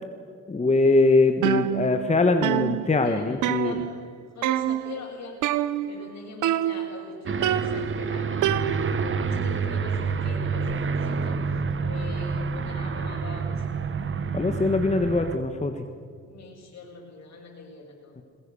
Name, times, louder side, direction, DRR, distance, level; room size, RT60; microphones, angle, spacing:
voice 1, 0.5-3.8 14.3-15.9 18.2-18.3, left 3 dB, 25° left, 6 dB, 1.4 m, -22 dB
sound 1, 1.4-2.1 2.4-4.1 4.4-5.0 5.4-6.1 6.4-7.1 7.4-9.1, right 12 dB, 80° right, 0.9 m, -27 dB
voice 2, 3.0-3.9 4.3-13.7 16.2-18.2, left 3 dB, 60° left, 0 dB, 7.1 m, -42 dB
Aircraft, 7.3-15.4, right 5 dB, 40° right, 1.4 m, -28 dB
22.0 x 20.5 x 7.0 m, 2.2 s
cardioid pair, 90°, 30 cm